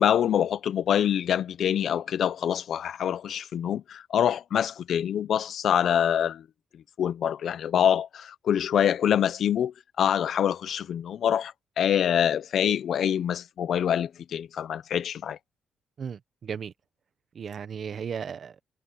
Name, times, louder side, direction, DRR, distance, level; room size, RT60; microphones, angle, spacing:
voice 1, 0.0-6.4 6.7-15.4, left 9 dB, 65° left, 1.0 m, -25 dB
voice 2, 16.0-16.7 17.3-18.6, right 7 dB, 50° right, 1.3 m, -35 dB
cardioid pair, 90°, 0 cm